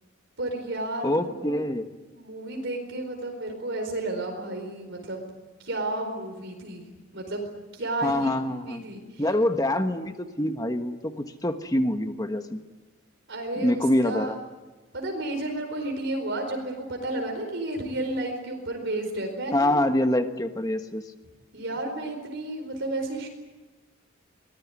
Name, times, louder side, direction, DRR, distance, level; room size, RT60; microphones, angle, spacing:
voice 1, 0.4-1.6 2.1-5.3 5.6-6.8 7.1-7.5 7.7-8.3 8.6-9.2 13.3-14.3 14.9-19.7 21.5-23.3, right 2 dB, 60° right, 3 dB, 4.6 m, -32 dB
voice 2, 1.0-1.9 8.0-8.8 9.2-12.6 13.6-14.4 19.5-21.0, left 1 dB, 20° left, 7 dB, 1.3 m, -25 dB
24.0 x 20.0 x 9.7 m, 1.2 s
head